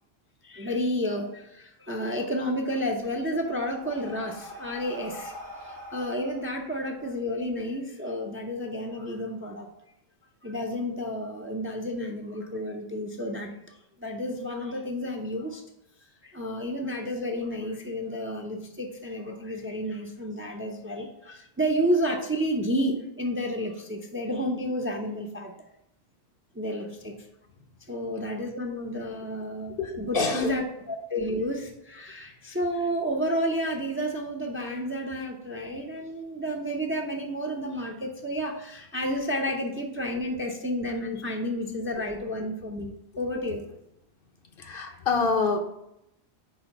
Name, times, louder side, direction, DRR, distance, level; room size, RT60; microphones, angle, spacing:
voice 1, 0.4-9.7 10.4-15.6 16.2-25.5 26.5-27.2 27.9-43.6 44.9-45.0, equal, 15° right, 1 dB, 0.5 m, -31 dB
Breathing, 2.9-7.6, equal, 50° right, 1.1 m, -44 dB
voice 2, 29.8-30.6 44.5-45.6, left 4 dB, 60° left, 5 dB, 1.0 m, -26 dB
4.8 x 4.2 x 5.8 m, 0.82 s
omnidirectional pair, 1.1 m